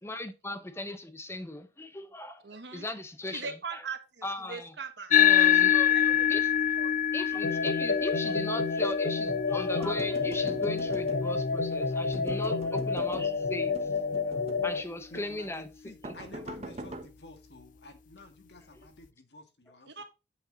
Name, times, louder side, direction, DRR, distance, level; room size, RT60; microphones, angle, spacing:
voice 1, 0.0-2.4 2.7-3.8 4.2-4.7 5.1-6.5 7.1-13.9 14.3-14.4 14.6-15.7 16.0-16.1, left 2 dB, 15° left, 0.8 m, -38 dB
voice 2, 2.4-2.9 3.3-6.0 6.8-6.9 19.9-20.0, right 5 dB, 75° right, 1.5 m, -41 dB
sound 1, 5.1-13.8, left 9 dB, 50° left, 0.5 m, -27 dB
sound 2, 7.4-14.8, left 4 dB, 85° left, 0.8 m, -30 dB
sound 3, 9.8-11.5 12.1-13.3 13.7-14.7 15.1-15.3 16.0-17.1, right 1 dB, 35° right, 1.1 m, -43 dB
voice 3, 15.1-20.0, left 2 dB, 70° left, 1.7 m, -50 dB
8.6 x 6.0 x 3.9 m
head